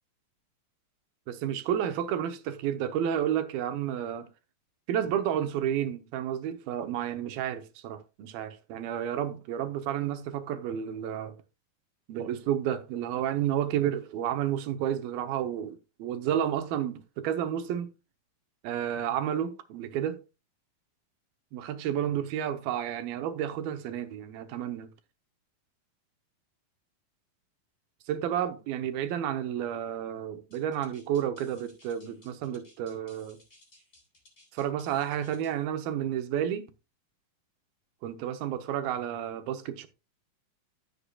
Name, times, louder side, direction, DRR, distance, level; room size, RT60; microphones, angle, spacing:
voice 1, 1.3-4.3 4.9-11.4 12.1-17.9 18.6-20.2 21.5-24.9 28.1-33.4 34.5-36.7 38.0-39.9, right 10 dB, 80° right, 2.7 m, -31 dB
sound 1, 30.5-35.6, left 1 dB, 15° left, 4.3 m, -59 dB
15.5 x 6.7 x 2.3 m
omnidirectional pair, 4.2 m